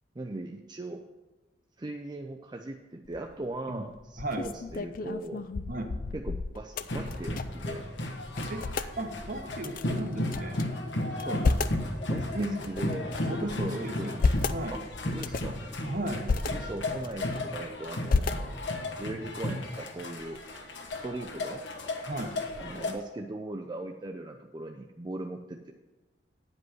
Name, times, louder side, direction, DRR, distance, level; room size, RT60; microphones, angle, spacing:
voice 1, 0.2-1.0 1.8-5.5 6.1-7.9 11.2-11.7 12.1-14.2 14.7-15.6 16.4-18.7 19.0-20.4 21.0-21.6 22.6-25.7, right 2 dB, 25° right, 4 dB, 0.4 m, -39 dB
sound 1, 3.0-3.4 3.9-7.7 8.0-8.1 8.3-8.9 9.6-10.6 11.1-11.8 12.4-13.4 13.9-14.6 15.1-15.6 16.1-16.5 17.0-17.6 18.1-18.8, left 4 dB, 50° left, 0.4 m, -31 dB
voice 2, 4.2-4.5 5.7-6.0 8.5-8.7 9.0-10.6 12.3-12.6 13.2-14.2 14.5-14.8 15.8-16.3 22.1-22.3, right 1 dB, 45° right, 5 dB, 1.0 m, -35 dB
sound 2, 6.9-22.9, left 1 dB, 80° left, 1.4 m, -35 dB
9.6 x 5.3 x 7.7 m, 1.1 s
head